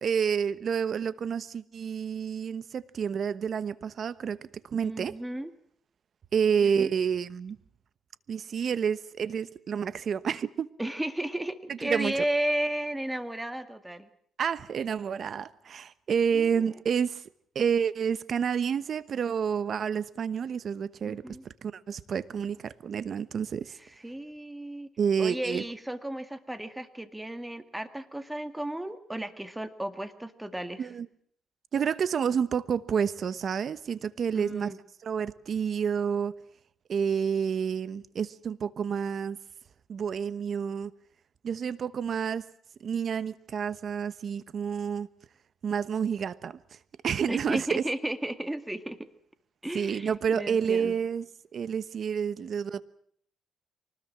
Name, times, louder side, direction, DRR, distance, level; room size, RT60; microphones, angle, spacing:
voice 1, 0.0-5.1 6.3-7.6 8.3-10.7 11.7-12.2 14.4-17.2 17.5-21.4 21.6-23.8 25.0-25.6 30.8-31.1 31.7-34.7 35.0-36.3 36.9-39.4 39.9-40.9 41.4-42.4 42.8-45.1 45.6-46.8 47.0-47.8 49.7-51.2 51.5-52.8, right 7 dB, 50° right, 1.1 m, -29 dB
voice 2, 4.8-5.5 6.6-6.9 10.8-14.1 16.3-16.7 21.0-21.4 24.0-24.9 25.2-30.9 34.3-34.8 47.3-49.1 49.6-50.9, right 1 dB, 10° right, 2.0 m, -34 dB
24.5 x 20.0 x 7.5 m
cardioid pair, 95°, 0 cm